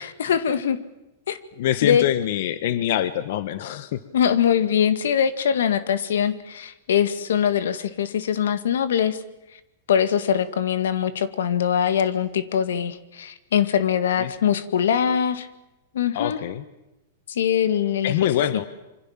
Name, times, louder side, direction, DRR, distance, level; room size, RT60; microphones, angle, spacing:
voice 1, 0.2-0.8 1.3-1.4 1.8-2.0 4.1-9.2 9.9-15.5 15.9-16.4 17.3-18.2, left 8 dB, 85° left, 12 dB, 2.0 m, -22 dB
voice 2, 1.6-4.0 14.2-14.3 16.1-16.6 18.0-18.7, left 11 dB, 60° left, 13 dB, 1.3 m, -24 dB
26.5 x 25.0 x 7.5 m, 0.94 s
supercardioid pair, 155°, 0 cm